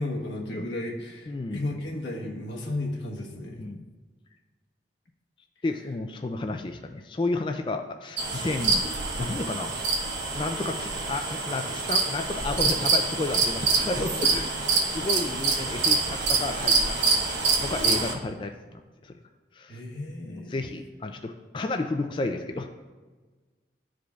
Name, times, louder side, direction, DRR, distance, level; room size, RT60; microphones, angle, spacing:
voice 1, 0.0-3.6 19.7-20.8, left 1 dB, 90° left, -2 dB, 1.3 m, -34 dB
voice 2, 1.3-1.6 3.6-3.8 5.6-8.8 9.2-14.5 14.9-17.0 17.6-19.1 19.5-19.8 20.2-22.7, left 2 dB, 30° left, 5 dB, 0.3 m, -32 dB
sound 1, 8.2-18.1, right 4 dB, 85° right, 1.1 m, -26 dB
12.5 x 4.9 x 2.3 m, 1.3 s
head